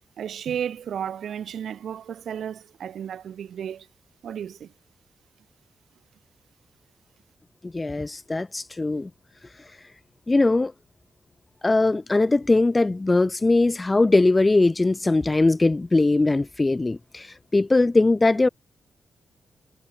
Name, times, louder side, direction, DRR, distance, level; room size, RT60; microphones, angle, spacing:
voice 1, 0.2-3.9 4.2-4.7, right 9 dB, 85° right, 6.0 m, -33 dB
voice 2, 7.6-9.1 10.3-10.7 11.6-18.5, left 2 dB, 20° left, 1.4 m, -20 dB
wide cardioid pair, 150°, 0 cm